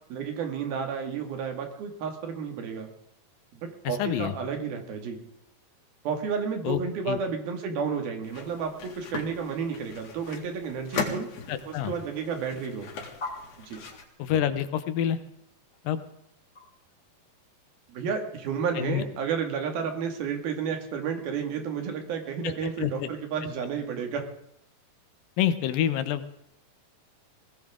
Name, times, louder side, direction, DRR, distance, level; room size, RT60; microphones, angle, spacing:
voice 1, 0.1-2.9 3.5-5.2 6.0-11.3 11.7-12.9 13.6-13.8 17.9-24.2, right 6 dB, 90° right, 4 dB, 4.0 m, -31 dB
voice 2, 3.9-4.3 6.6-6.8 7.1-7.2 11.5-11.9 14.2-15.2 15.9-16.0 18.8-19.0 22.6-23.1 25.4-26.4, left 10 dB, 75° left, 11 dB, 2.6 m, -27 dB
sound 1, 8.2-14.1, left 5 dB, 60° left, 3.4 m, -38 dB
sound 2, 13.1-17.8, left 3 dB, 15° left, 3.3 m, -43 dB
21.0 x 17.0 x 3.7 m, 0.74 s
omnidirectional pair, 4.1 m